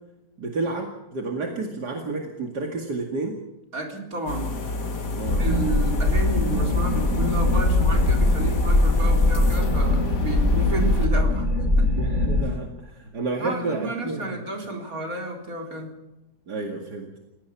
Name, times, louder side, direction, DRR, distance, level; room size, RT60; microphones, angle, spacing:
voice 1, 0.4-3.4 5.1-5.5 12.0-14.4 16.5-17.1, right 3 dB, 75° right, 2 dB, 2.8 m, -30 dB
voice 2, 3.7-4.5 5.4-11.5 11.8-12.0 13.4-16.0, right 2 dB, 55° right, 2 dB, 4.3 m, -31 dB
sound 1, 4.3-11.1, left 3 dB, 80° left, 2.9 m, -31 dB
sound 2, 5.3-12.5, left 2 dB, 40° left, 5.1 m, -21 dB
29.5 x 17.5 x 5.9 m, 0.98 s
omnidirectional pair, 1.8 m